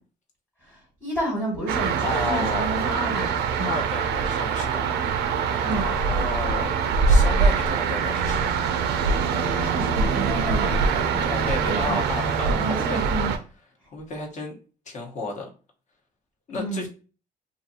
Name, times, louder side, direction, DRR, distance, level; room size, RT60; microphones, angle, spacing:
voice 1, 0.7-3.7 5.6-5.8 9.5-12.0 12.5-13.3 16.5-16.9, right 1 dB, 10° left, 1.3 m, -31 dB
sound 1, 1.7-13.4, right 5 dB, 80° right, 0.5 m, -23 dB
voice 2, 2.0-2.8 3.6-4.9 5.7-6.7 7.0-8.6 11.3-13.1 13.9-14.6 14.9-15.5 16.5-16.9, left 2 dB, 45° left, 1.0 m, -32 dB
2.6 x 2.5 x 2.7 m
cardioid pair, 110°, 17 cm